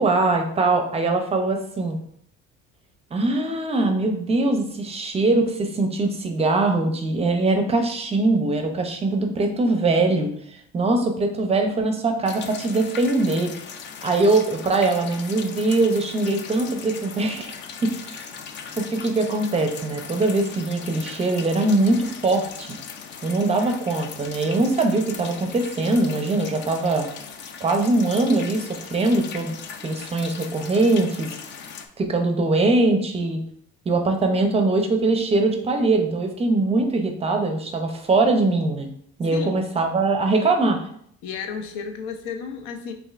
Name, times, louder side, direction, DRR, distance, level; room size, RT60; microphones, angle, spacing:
voice 1, 0.0-2.0 3.1-13.5 14.0-17.5 17.8-18.3 18.8-22.8 23.2-27.1 27.6-29.6 29.8-31.3 32.0-33.4 33.9-38.9 39.2-40.8, right 2 dB, 20° right, 4 dB, 0.5 m, -22 dB
sound 1, 12.3-31.9, left 6 dB, 40° left, 0.4 m, -39 dB
voice 2, 39.3-39.6 40.3-40.5 41.2-42.9, left 6 dB, 80° left, 5 dB, 0.7 m, -33 dB
6.2 x 2.5 x 2.4 m, 0.66 s
cardioid pair, 140°, 30 cm